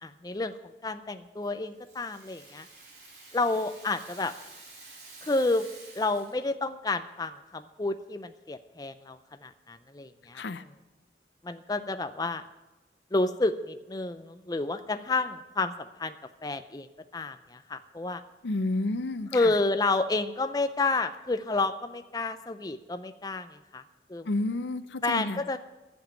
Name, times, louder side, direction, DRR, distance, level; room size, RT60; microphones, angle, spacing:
voice 1, 0.0-2.7 3.3-4.3 5.2-5.7 5.9-10.4 11.4-12.4 13.1-16.2 16.4-16.9 17.1-18.2 19.3-23.8 24.1-24.3 25.0-25.6, left 3 dB, 20° left, 9 dB, 0.5 m, -30 dB
Rattle (instrument), 1.4-6.5, right 3 dB, 70° right, 3.6 m, -50 dB
voice 2, 18.4-19.5 24.2-25.4, left 2 dB, 85° left, 13 dB, 0.6 m, -30 dB
11.0 x 7.3 x 8.7 m, 1.1 s
head